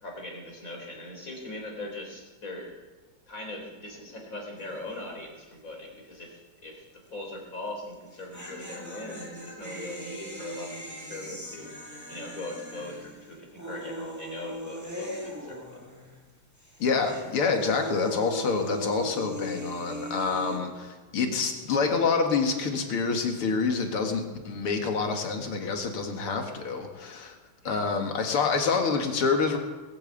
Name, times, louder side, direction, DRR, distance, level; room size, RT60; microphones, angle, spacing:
voice 1, 0.0-2.8 3.3-15.8 27.6-27.9, left 2 dB, 40° left, 0 dB, 4.2 m, -40 dB
sound 1, 4.6-4.9 5.2-5.3 7.9-16.3 16.6-20.6, equal, 5° right, 4.7 m, -40 dB
voice 2, 16.8-27.4 27.6-29.6, left 4 dB, 90° left, 4 dB, 2.8 m, -27 dB
20.0 x 8.7 x 8.2 m, 1.3 s
omnidirectional pair, 2.4 m